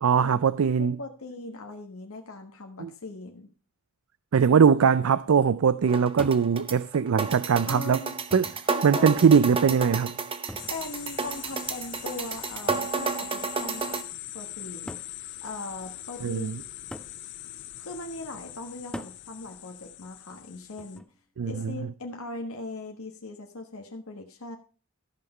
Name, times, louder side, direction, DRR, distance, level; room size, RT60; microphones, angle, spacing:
voice 1, 0.0-1.0 2.8-2.9 4.3-8.0 8.3-8.4 8.8-10.1 16.2-16.6 21.4-21.8, right 6 dB, 70° right, 0.4 m, -21 dB
voice 2, 0.8-3.5 7.7-8.1 8.6-9.3 10.7-13.9 14.3-15.0 15.4-16.5 17.8-21.0 21.4-24.6, left 2 dB, 90° left, 1.3 m, -39 dB
sound 1, 5.9-14.0, right 4 dB, 25° right, 0.7 m, -32 dB
sound 2, 6.2-6.5 7.6-7.7 8.3-8.7 10.5-10.8 12.7-13.0 14.0-14.1 14.9-15.2 16.9-17.2 18.9-19.2 20.8-21.2, equal, 5° left, 0.5 m, -41 dB
sound 3, 10.6-21.0, left 13 dB, 55° left, 0.6 m, -42 dB
13.5 x 5.8 x 5.4 m
head